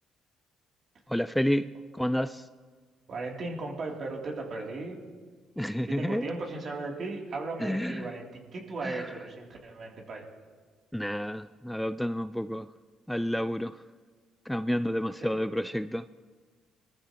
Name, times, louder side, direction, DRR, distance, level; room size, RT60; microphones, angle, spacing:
voice 1, 1.1-2.4 5.6-6.2 7.6-8.1 8.8-9.1 10.9-12.7 13.1-13.8 14.5-16.0, equal, 5° left, 12 dB, 0.4 m, -30 dB
voice 2, 3.1-5.0 5.9-10.3 15.2-15.4, right 3 dB, 50° right, -1 dB, 2.9 m, -36 dB
21.5 x 14.0 x 2.9 m, 1.5 s
supercardioid pair, 75°, 0 cm